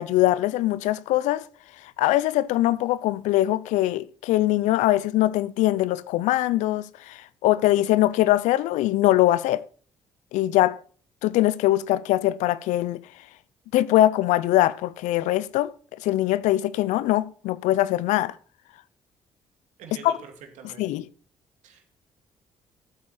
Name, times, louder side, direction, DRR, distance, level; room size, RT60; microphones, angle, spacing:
voice 1, 0.0-1.5 2.0-9.6 10.3-10.8 11.2-13.0 13.7-15.7 16.0-18.4 20.0-20.1 20.8-21.0, left 15 dB, 75° left, 0.6 m, -22 dB
voice 2, 19.8-21.1 21.6-21.8, right 6 dB, 75° right, 2.5 m, -45 dB
12.5 x 8.4 x 4.2 m
hypercardioid pair, 50°, 12 cm